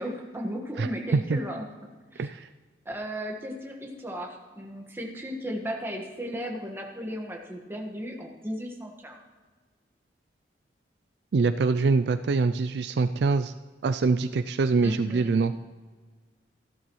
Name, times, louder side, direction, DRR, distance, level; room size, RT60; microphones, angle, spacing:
voice 1, 0.0-2.3 2.8-9.2 14.8-15.4, equal, 15° right, 1 dB, 1.5 m, -35 dB
voice 2, 11.3-13.5 13.8-15.5, right 4 dB, 65° right, 10 dB, 0.4 m, -24 dB
14.5 x 12.0 x 3.1 m, 1.4 s
head